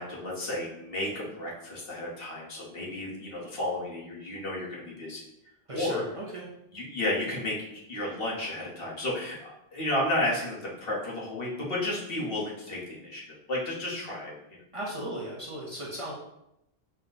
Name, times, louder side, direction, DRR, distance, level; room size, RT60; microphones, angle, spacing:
voice 1, 0.0-5.2 5.7-6.0 6.7-14.6, left 1 dB, 65° left, -5 dB, 1.3 m, -32 dB
voice 2, 5.7-6.5 14.7-16.1, right 1 dB, 35° right, -4 dB, 0.7 m, -36 dB
4.3 x 2.2 x 3.8 m, 0.83 s
omnidirectional pair, 1.1 m